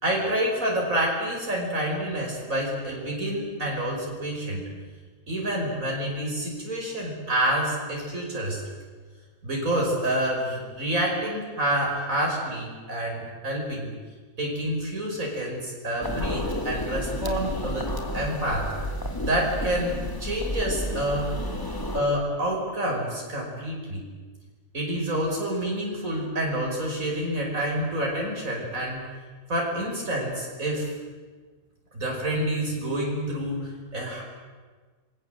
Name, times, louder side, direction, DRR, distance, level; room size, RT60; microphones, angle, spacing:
voice 1, 0.0-4.6 5.3-8.6 9.4-13.9 14.4-17.9 18.1-18.7 19.3-19.9 20.2-21.3 21.9-24.0 24.7-29.0 29.5-30.9 31.9-34.2, right 1 dB, 70° right, -2 dB, 5.8 m, -28 dB
sound 1, 16.0-22.0, left 1 dB, 15° left, 2.6 m, -31 dB
28.0 x 22.0 x 7.9 m, 1.4 s
omnidirectional pair, 1.5 m